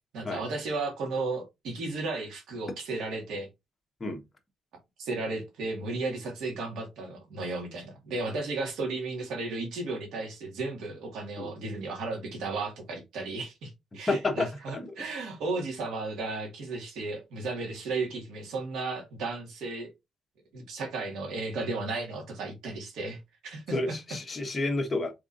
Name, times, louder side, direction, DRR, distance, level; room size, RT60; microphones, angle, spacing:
voice 1, 0.1-3.5 5.0-19.9 20.5-24.0, right 3 dB, 80° right, 2.1 m, -34 dB
voice 2, 14.1-14.9 23.7-25.1, left 2 dB, 25° left, 1.3 m, -30 dB
4.7 x 3.7 x 2.6 m
cardioid pair, 90°, 0 cm